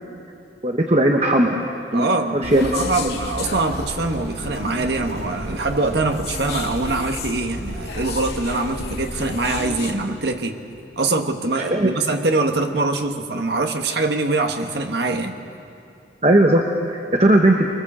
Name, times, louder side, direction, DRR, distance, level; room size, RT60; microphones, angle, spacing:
voice 1, 0.6-1.7 1.9-2.1 2.3-2.7 11.5-11.9 16.2-17.7, right 1 dB, 35° right, 2 dB, 1.2 m, -17 dB
voice 2, 1.9-10.6 11.0-15.4, right 3 dB, 65° right, 4 dB, 1.5 m, -23 dB
sound 1, 2.4-9.9, left 2 dB, 60° left, 2.0 m, -31 dB
24.5 x 22.0 x 7.4 m, 2.7 s
head